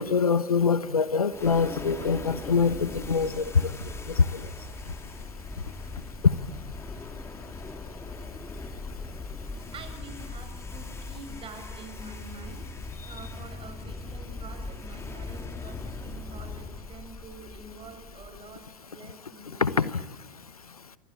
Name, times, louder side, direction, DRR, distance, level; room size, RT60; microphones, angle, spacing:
voice 1, 0.0-3.7 4.1-4.4 6.2-6.3 19.6-19.9, left 5 dB, 90° left, 16 dB, 1.1 m, -24 dB
sound 1, 1.3-18.7, left 3 dB, 15° left, 3.5 m, -40 dB
voice 2, 9.7-12.6 13.0-19.7, right 4 dB, 30° right, 8 dB, 7.2 m, -46 dB
27.5 x 24.5 x 8.7 m, 1.1 s
figure-of-eight pair, 85°, 18 cm